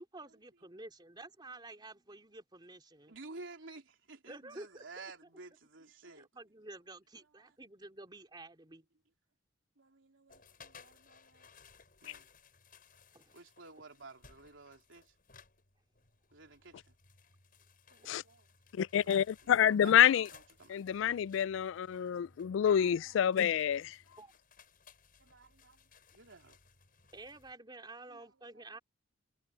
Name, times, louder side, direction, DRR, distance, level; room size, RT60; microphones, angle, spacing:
voice 1, 0.0-3.1 4.3-5.0 6.2-8.9 13.1-13.4 18.0-18.1 24.2-24.3 27.1-28.8, right 2 dB, 25° right, 3.2 m, -50 dB
voice 2, 3.1-6.3 7.4-7.5 9.8-11.5 12.0-12.3 13.3-15.1 16.3-16.9 17.9-18.5 19.0-20.8 22.6-23.3 25.2-26.6 28.1-28.5, right 3 dB, 85° right, 3.3 m, -53 dB
sound 1, 10.3-27.5, left 5 dB, 50° left, 6.6 m, -61 dB
voice 3, 18.8-20.3 20.7-24.0, left 9 dB, 75° left, 0.3 m, -27 dB
head